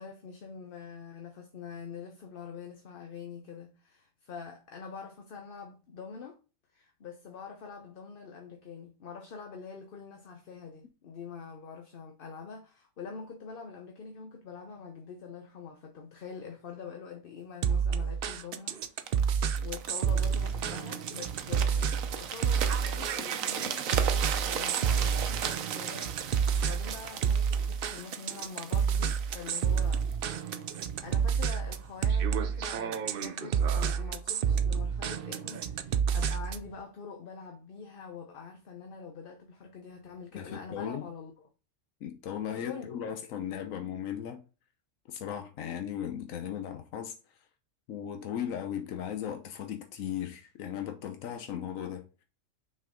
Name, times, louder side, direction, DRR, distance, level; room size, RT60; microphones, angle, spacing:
voice 1, 0.0-6.4 6.7-19.2 19.6-26.2 26.6-30.1 30.3-41.3 42.5-43.0, left 5 dB, 50° left, 0.9 m, -45 dB
sound 1, 17.6-36.7, right 7 dB, 60° right, 0.6 m, -29 dB
sound 2, 19.1-30.9 31.5-31.7, right 8 dB, 90° right, 1.1 m, -37 dB
voice 2, 40.3-41.0 42.0-44.4 45.1-47.2 47.9-52.0, left 9 dB, 90° left, 1.1 m, -37 dB
6.0 x 4.5 x 3.7 m
omnidirectional pair, 1.4 m